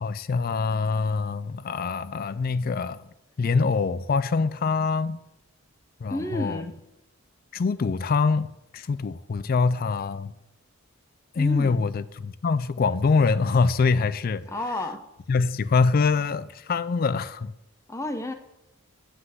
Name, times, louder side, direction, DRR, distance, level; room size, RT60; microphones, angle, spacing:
voice 1, 0.0-3.0 3.4-5.2 6.0-6.7 7.5-8.5 8.7-10.3 11.3-14.5 15.3-17.5, left 4 dB, 40° left, 0.3 m, -24 dB
voice 2, 6.1-6.8 11.3-11.9 14.5-15.0 17.9-18.3, left 1 dB, 15° left, 0.7 m, -31 dB
7.9 x 5.8 x 7.7 m
head